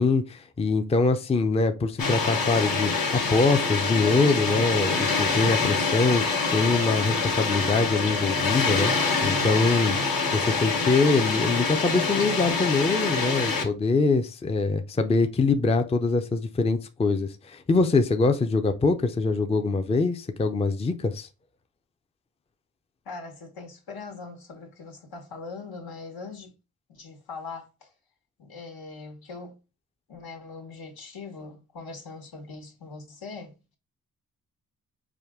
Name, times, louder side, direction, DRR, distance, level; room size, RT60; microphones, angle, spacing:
voice 1, 0.0-10.0 10.3-21.3, left 3 dB, 15° left, 0.4 m, -24 dB
Water, 2.0-13.6, left 4 dB, 65° left, 1.1 m, -26 dB
voice 2, 23.0-26.5 26.9-27.9 28.4-29.5 30.1-33.8, left 4 dB, 80° left, 1.4 m, -41 dB
4.9 x 2.6 x 3.5 m
cardioid pair, 90°, 36 cm